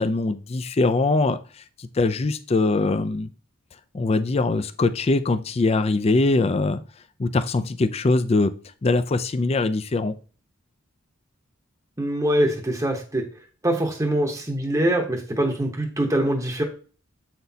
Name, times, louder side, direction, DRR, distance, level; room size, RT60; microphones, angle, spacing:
voice 1, 0.0-1.4 1.8-3.3 3.9-6.8 7.2-8.5 8.8-10.1, left 3 dB, 30° left, 12 dB, 0.4 m, -22 dB
voice 2, 12.0-13.2 13.6-16.6, right 1 dB, 15° right, 2 dB, 0.9 m, -23 dB
7.9 x 5.9 x 2.8 m, 0.39 s
head